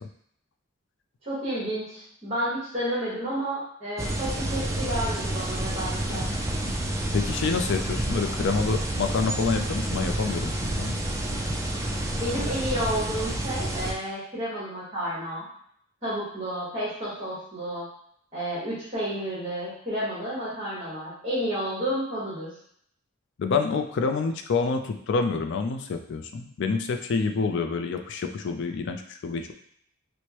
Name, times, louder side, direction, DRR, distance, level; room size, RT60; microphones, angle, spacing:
voice 1, 1.2-6.3 12.2-15.5 16.0-17.9 18.3-22.5, equal, 35° right, -9 dB, 1.2 m, -31 dB
sound 1, 4.0-13.9, right 1 dB, 15° right, 0.3 m, -29 dB
voice 2, 7.1-11.0 23.4-29.5, left 4 dB, 60° left, 6 dB, 0.4 m, -27 dB
4.5 x 2.1 x 2.9 m, 0.67 s
head